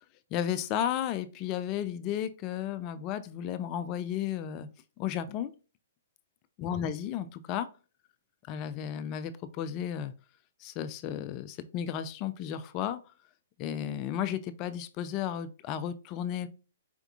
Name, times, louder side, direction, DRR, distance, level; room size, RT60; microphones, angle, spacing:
voice 1, 0.3-4.7 5.0-5.5 6.6-7.7 8.5-10.1 10.6-13.1 13.6-16.5, left 10 dB, 30° left, 12 dB, 0.3 m, -33 dB
4.3 x 3.5 x 2.4 m, 0.34 s
hypercardioid pair, 125°, 0 cm